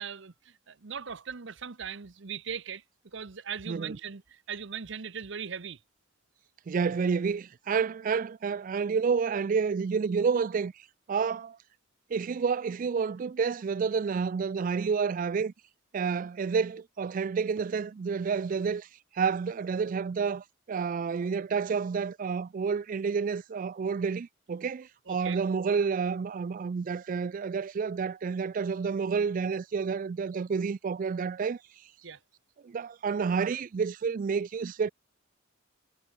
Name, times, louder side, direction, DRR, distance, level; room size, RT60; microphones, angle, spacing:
voice 1, 0.0-2.8 3.1-5.8 25.1-25.4 32.0-32.2, right 7 dB, 65° right, 0.9 m, -39 dB
voice 2, 6.7-11.6 12.1-15.5 15.9-18.9 19.1-31.6 32.6-34.9, right 5 dB, 45° right, 0.3 m, -29 dB
head